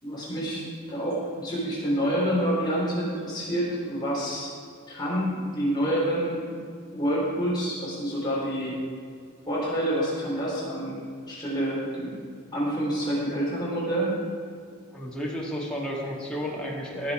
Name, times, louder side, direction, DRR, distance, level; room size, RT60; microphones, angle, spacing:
voice 1, 0.0-4.5 4.9-6.5 6.9-8.8 9.5-12.1 12.5-14.1, equal, 20° left, -7 dB, 3.5 m, -28 dB
voice 2, 14.9-17.1, equal, 5° left, -4 dB, 1.8 m, -32 dB
19.0 x 6.8 x 4.8 m, 2.2 s
head